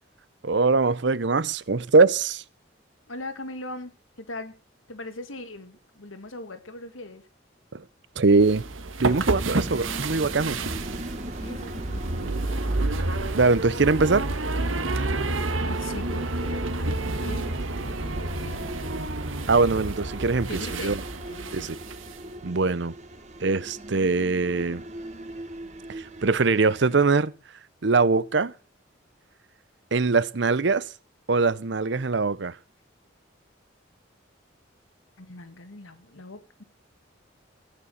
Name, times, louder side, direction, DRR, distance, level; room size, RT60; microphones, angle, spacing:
voice 1, 0.4-2.4 7.7-7.8 8.2-8.6 9.0-10.6 13.3-14.3 19.5-20.5 20.8-21.0 21.5-21.7 22.4-22.9 23.4-24.8 25.9-27.3 27.8-28.5 29.9-30.9 31.3-32.6, right 4 dB, 60° right, 0.7 m, -22 dB
voice 2, 3.1-4.5 4.9-7.3 11.4-12.4 15.2-18.7 20.5-21.0 21.3-21.7 35.2-36.6, left 2 dB, 85° left, 2.0 m, -40 dB
sound 1, 8.3-22.2, right 2 dB, 85° right, 1.5 m, -30 dB
sound 2, 9.1-27.1, right 1 dB, 35° right, 1.7 m, -40 dB
15.5 x 9.7 x 6.5 m
head